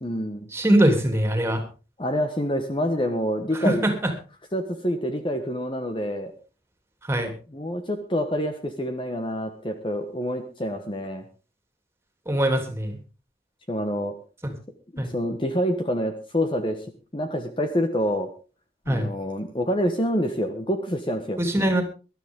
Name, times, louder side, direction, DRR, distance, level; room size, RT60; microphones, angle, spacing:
voice 1, 0.0-0.5 2.0-3.8 4.5-6.3 7.5-11.2 13.7-14.1 14.9-16.9 17.1-18.3 18.9-21.4, equal, 25° left, 6 dB, 1.3 m, -27 dB
voice 2, 0.5-1.6 3.6-4.1 7.1-7.3 12.3-13.0 15.0-15.1 18.9-19.1 21.4-21.8, right 1 dB, 15° right, 5 dB, 3.1 m, -22 dB
19.5 x 12.5 x 3.8 m, 0.34 s
head